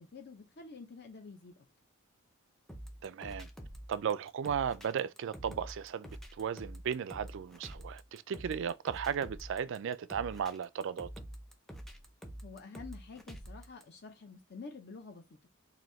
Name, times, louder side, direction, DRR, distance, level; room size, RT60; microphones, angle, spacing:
voice 1, 0.0-1.7 12.4-15.5, left 4 dB, 50° left, 0.6 m, -49 dB
sound 1, 2.7-13.8, right 1 dB, ahead, 0.5 m, -47 dB
voice 2, 3.0-3.5 3.9-6.1 6.4-11.1, right 7 dB, 55° right, 0.3 m, -35 dB
4.0 x 2.7 x 3.1 m
head